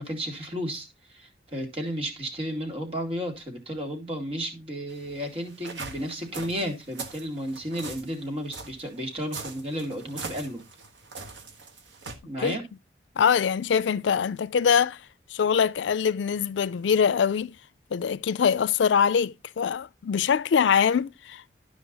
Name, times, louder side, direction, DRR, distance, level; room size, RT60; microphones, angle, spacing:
voice 1, 0.0-10.6 12.2-12.6, equal, 30° right, 2.4 m, -33 dB
sound 1, 4.9-12.2, right 4 dB, 90° right, 1.4 m, -41 dB
voice 2, 13.2-15.0 15.3-17.5 17.9-21.4, left 7 dB, 90° left, 0.4 m, -23 dB
12.0 x 5.1 x 3.9 m
head